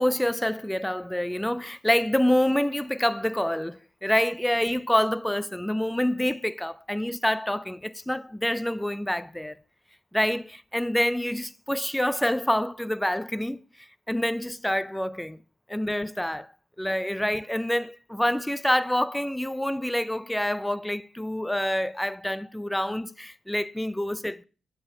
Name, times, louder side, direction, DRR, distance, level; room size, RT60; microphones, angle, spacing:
voice 1, 0.0-9.6 10.1-13.6 14.1-15.4 15.7-16.5 16.8-24.4, left 1 dB, 5° left, 0.3 m, -27 dB
7.5 x 5.5 x 4.4 m
cardioid pair, 85°, 0 cm